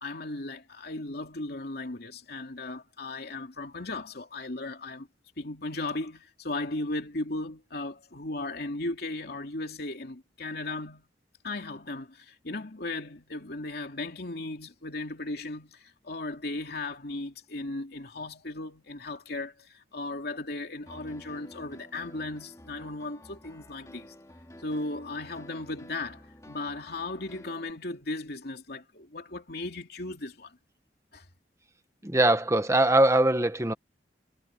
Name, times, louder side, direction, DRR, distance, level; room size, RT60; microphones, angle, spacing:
voice 1, 0.0-5.1 5.4-11.1 11.4-24.1 24.6-30.6 31.1-31.2, left 2 dB, 65° left, 2.9 m, -36 dB
Piano, 20.9-27.7, left 1 dB, 20° left, 2.7 m, -50 dB
voice 2, 32.0-33.7, right 1 dB, 15° right, 1.3 m, -22 dB
head